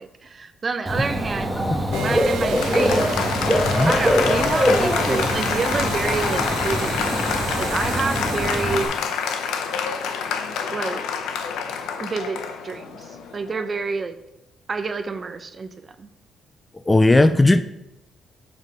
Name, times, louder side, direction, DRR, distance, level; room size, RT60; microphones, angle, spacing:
voice 1, 0.0-1.5 2.0-3.2 3.8-8.9 10.7-11.0 12.0-13.0 13.3-14.2 14.7-15.7 16.0-16.1, right 4 dB, 40° right, 9 dB, 0.6 m, -28 dB
Dog / Bird, 0.9-8.9, equal, 10° right, 1.2 m, -23 dB
Applause, 1.9-13.8, left 6 dB, 85° left, 0.8 m, -27 dB
sound 1, 1.9-10.2, right 8 dB, 85° right, 0.7 m, -36 dB
voice 2, 16.9-17.6, left 2 dB, 15° left, 12 dB, 0.4 m, -15 dB
7.4 x 4.0 x 4.9 m, 0.88 s
cardioid pair, 90°, 0 cm